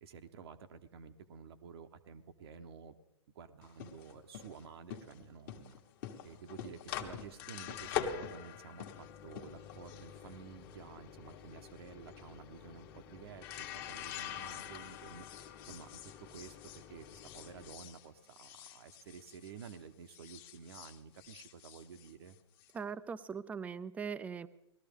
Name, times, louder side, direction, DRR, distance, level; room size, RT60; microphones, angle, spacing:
voice 1, 0.0-2.9 3.3-5.8 6.2-15.3 15.6-22.4, right 6 dB, 55° right, 7 dB, 0.9 m, -52 dB
sound 1, 3.6-19.8 20.1-22.7, left 9 dB, 45° left, 1.3 m, -45 dB
voice 2, 22.7-24.5, right 6 dB, 10° right, 15 dB, 0.4 m, -40 dB
19.0 x 13.0 x 3.5 m, 0.89 s
figure-of-eight pair, 115°, 15 cm